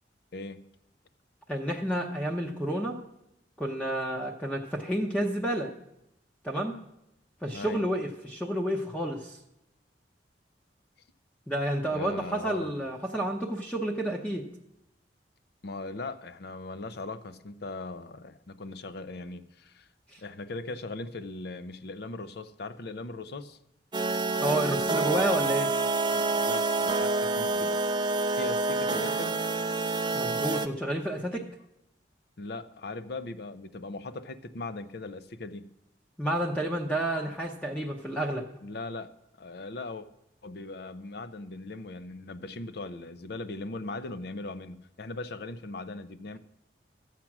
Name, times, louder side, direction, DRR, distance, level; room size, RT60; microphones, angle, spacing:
voice 1, 1.5-3.0 3.6-5.7 6.4-6.8 7.4-9.4 11.5-14.4 20.1-20.2 24.4-25.7 30.1-31.5 36.2-38.5, right 1 dB, 5° left, 1 dB, 0.8 m, -30 dB
voice 2, 11.9-12.7 15.6-19.9 20.2-23.6 25.3-25.6 26.1-27.8 28.3-29.3 32.4-35.7 38.6-39.1 39.4-40.1 40.4-46.4, left 2 dB, 65° left, 13 dB, 0.6 m, -39 dB
sound 1, 23.9-30.7, right 3 dB, 25° right, 0.5 m, -27 dB
13.0 x 7.5 x 6.0 m, 0.85 s
head